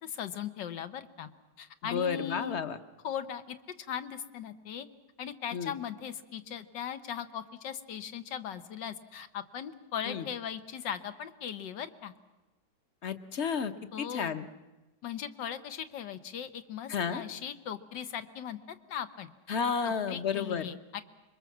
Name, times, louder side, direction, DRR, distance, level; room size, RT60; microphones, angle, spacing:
voice 1, 0.0-1.3 1.6-2.6 3.0-4.9 5.2-12.1 13.9-14.4 15.0-19.3 19.8-21.0, left 9 dB, 90° left, 10 dB, 1.8 m, -39 dB
voice 2, 1.8-2.8 5.5-5.7 10.1-10.2 13.0-14.5 16.9-17.2 19.5-20.7, left 6 dB, 45° left, 11 dB, 1.0 m, -32 dB
25.5 x 22.5 x 7.3 m, 1.1 s
omnidirectional pair, 1.9 m